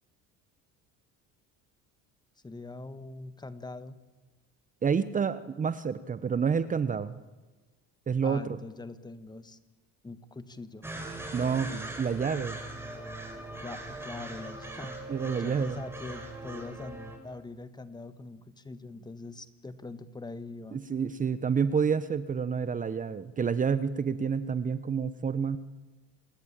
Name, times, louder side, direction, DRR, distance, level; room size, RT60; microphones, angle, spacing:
voice 1, 2.4-4.0 8.2-9.6 10.0-10.8 13.6-15.0 15.4-20.8, left 3 dB, 15° left, 13 dB, 1.6 m, -43 dB
voice 2, 4.8-7.2 8.1-8.6 11.3-12.6 15.1-15.8 20.7-25.6, right 6 dB, 25° right, 14 dB, 1.1 m, -29 dB
sound 1, 10.8-17.2, right 2 dB, 10° right, 5.1 m, -41 dB
28.0 x 21.0 x 9.0 m, 1.2 s
cardioid pair, 120°, 31 cm